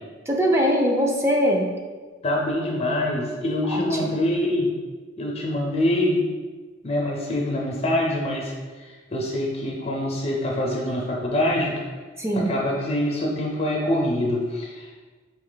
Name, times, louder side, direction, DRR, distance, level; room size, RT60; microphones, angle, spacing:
voice 1, 0.3-1.7 3.7-4.1 12.2-12.6, equal, 15° right, 0 dB, 0.5 m, -22 dB
voice 2, 2.2-4.7 5.2-6.2 6.8-11.7 12.5-14.9, left 1 dB, 35° left, -1 dB, 0.5 m, -25 dB
4.1 x 3.1 x 3.9 m, 1.4 s
head